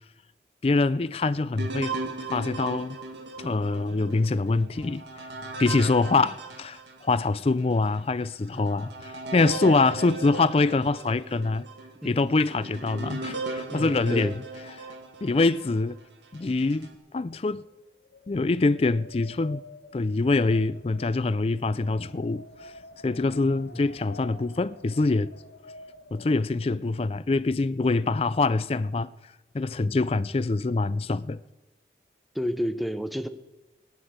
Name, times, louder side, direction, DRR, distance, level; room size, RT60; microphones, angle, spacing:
voice 1, 0.6-2.0 2.3-3.0 3.4-5.0 5.6-11.7 12.0-14.4 14.8-14.9 15.2-16.0 16.3-16.9 17.1-17.6 18.3-19.6 19.9-22.7 23.0-25.3 26.1-29.1 29.5-31.4, left 3 dB, 35° left, 0.4 m, -25 dB
sound 1, 1.6-7.3 7.9-8.0 8.5-15.7 16.3-16.9, right 3 dB, 80° right, 1.9 m, -37 dB
voice 2, 13.7-14.3 23.2-23.8 29.9-30.0 32.3-33.3, equal, ahead, 0.7 m, -32 dB
Wind, 17.5-26.6, left 2 dB, 90° left, 1.3 m, -49 dB
17.0 x 9.9 x 7.9 m
head